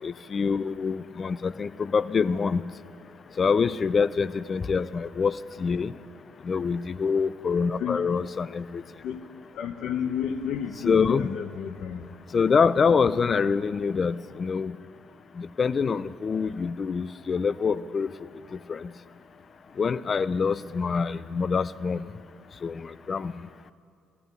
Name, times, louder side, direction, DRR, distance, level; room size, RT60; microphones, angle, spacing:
voice 1, 0.0-2.6 3.4-5.9 6.4-8.8 10.8-11.3 12.3-14.8 15.4-18.9 19.8-22.1 22.6-23.3, left 5 dB, 35° left, 17 dB, 0.4 m, -25 dB
voice 2, 9.6-12.0, left 8 dB, 65° left, 9 dB, 0.7 m, -31 dB
14.5 x 9.0 x 9.5 m, 2.3 s
cardioid pair, 120°, 0 cm